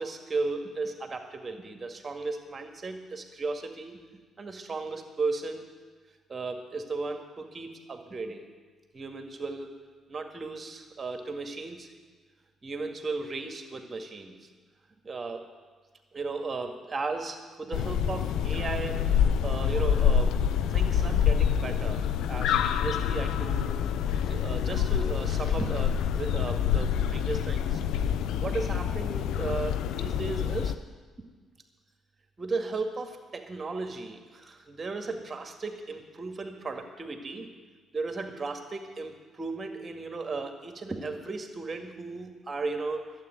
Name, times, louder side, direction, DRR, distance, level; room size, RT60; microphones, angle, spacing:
voice 1, 0.0-4.0 4.4-5.7 6.3-8.5 8.9-9.7 10.1-11.9 12.6-14.5 15.0-15.5 16.1-19.0 19.4-20.4 20.7-27.8 28.4-30.7 32.4-37.5 37.9-43.1, right 3 dB, 35° right, 5 dB, 2.0 m, -35 dB
sound 1, 17.7-30.7, left 8 dB, 70° left, 0.6 m, -27 dB
12.0 x 8.3 x 9.3 m, 1.4 s
hypercardioid pair, 45°, 0 cm